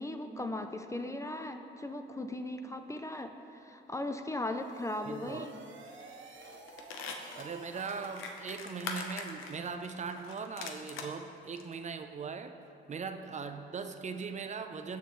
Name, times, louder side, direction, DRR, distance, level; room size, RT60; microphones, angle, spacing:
voice 1, 0.0-5.5, left 1 dB, 15° left, 6 dB, 0.5 m, -38 dB
sound 1, 4.4-9.2, right 4 dB, 75° right, 1.0 m, -52 dB
voice 2, 5.0-5.5 7.3-12.6 12.9-15.0, right 5 dB, 35° right, 8 dB, 0.5 m, -40 dB
sound 2, 5.9-6.1 6.4-11.1 11.6-11.7, left 5 dB, 85° left, 0.8 m, -43 dB
15.5 x 6.4 x 3.1 m, 2.8 s
cardioid pair, 90°, 20 cm